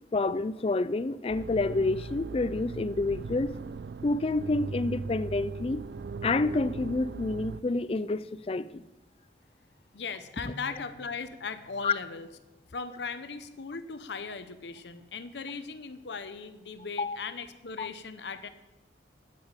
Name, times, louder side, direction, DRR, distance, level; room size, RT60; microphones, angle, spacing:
voice 1, 0.1-3.5 4.0-5.8 6.2-8.8 11.8-11.9 17.0-17.2 17.8-17.9, left 3 dB, 35° left, 0.4 m, -28 dB
sound 1, 1.3-7.6, right 4 dB, 70° right, 0.4 m, -39 dB
voice 2, 9.9-12.3 12.7-18.5, left 5 dB, 80° left, 0.8 m, -38 dB
9.3 x 8.7 x 8.8 m
head